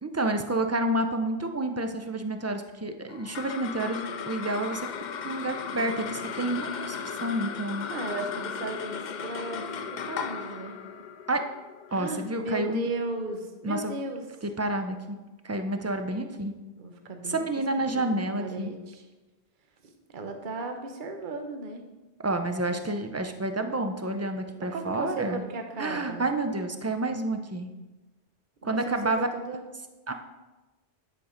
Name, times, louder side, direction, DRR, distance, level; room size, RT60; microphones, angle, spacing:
voice 1, 0.0-4.9 5.2-7.9 11.3-11.4 11.9-12.9 13.6-13.8 14.6-15.2 15.4-16.5 17.3-18.7 22.2-25.4 25.8-27.7 28.6-29.3 30.1-30.2, right 2 dB, 25° right, 6 dB, 0.4 m, -29 dB
sound 1, 3.1-13.7, left 6 dB, 55° left, 0.5 m, -36 dB
voice 2, 7.9-10.8 11.9-14.2 16.8-17.4 17.8-19.0 19.8-21.8 22.5-22.8 24.6-26.2 28.6-29.6, right 2 dB, 50° right, 5 dB, 1.0 m, -36 dB
9.7 x 5.2 x 5.0 m, 1.1 s
omnidirectional pair, 1.1 m